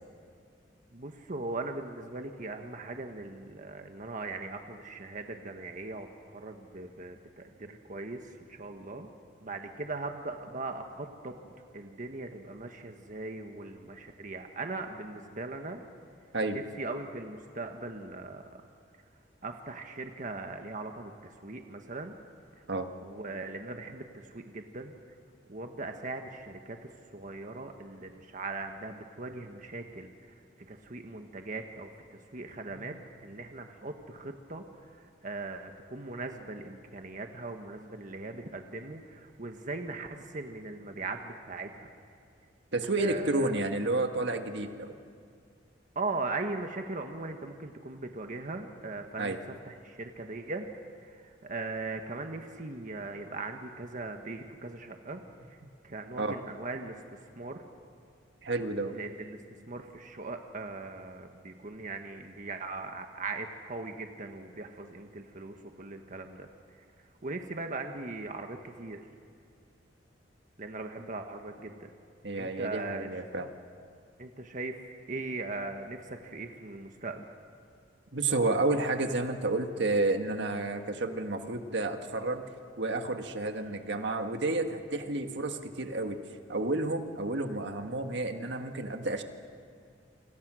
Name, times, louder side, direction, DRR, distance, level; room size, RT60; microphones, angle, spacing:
voice 1, 0.9-9.1 9.4-11.4 11.7-15.8 16.5-18.4 19.4-22.2 23.0-24.9 25.5-30.4 30.7-31.9 32.3-34.6 34.9-41.9 43.0-43.5 45.9-49.4 49.6-50.7 51.0-55.2 55.5-55.6 55.8-57.6 58.9-59.4 59.7-66.5 67.2-69.0 70.6-71.9 72.4-73.1 74.2-77.2, right 3 dB, 45° right, 5 dB, 1.4 m, -39 dB
voice 2, 42.7-44.9 49.2-49.4 56.2-56.4 58.4-58.9 72.2-73.5 78.1-82.4 82.8-86.2 86.5-89.2, right 2 dB, 70° right, 6 dB, 1.7 m, -30 dB
28.5 x 25.5 x 6.3 m, 2.3 s
head